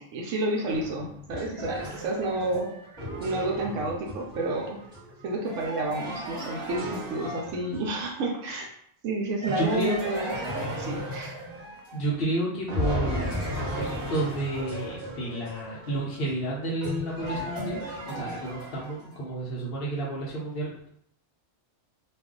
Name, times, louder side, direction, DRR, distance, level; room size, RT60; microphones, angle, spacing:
voice 1, 0.0-2.7 3.2-4.8 5.2-8.7 9.0-11.3, right 2 dB, 80° right, 0 dB, 0.9 m, -30 dB
sound 1, 0.7-8.1 9.4-12.3 12.7-19.1, equal, 15° right, 1.2 m, -35 dB
voice 2, 9.5-10.0 11.9-17.8 18.1-20.9, right 1 dB, 60° left, -5 dB, 0.8 m, -31 dB
2.4 x 2.3 x 3.6 m, 0.69 s
omnidirectional pair, 1.3 m